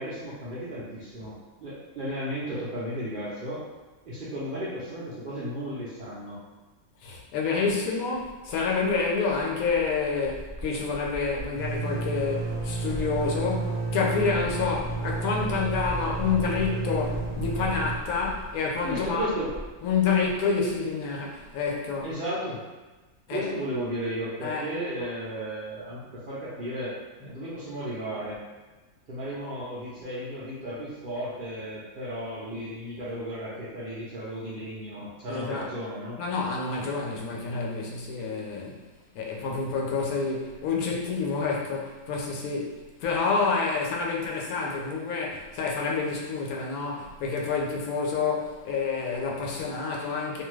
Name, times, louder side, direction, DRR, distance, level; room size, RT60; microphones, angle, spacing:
voice 1, 0.0-3.6 4.1-6.4 18.8-19.5 22.0-22.6 23.3-26.9 27.2-28.4 29.1-36.2, equal, 55° right, -9 dB, 0.6 m, -34 dB
voice 2, 7.0-19.3 19.8-22.1 23.3-23.5 24.4-24.7 35.3-35.6 36.2-38.8 39.1-50.4, left 4 dB, 85° left, -2 dB, 1.1 m, -28 dB
sound 1, 8.5-9.0 9.3-9.4 9.7-20.3, right 3 dB, 30° left, 1.0 m, -32 dB
2.6 x 2.4 x 3.1 m, 1.2 s
omnidirectional pair, 1.5 m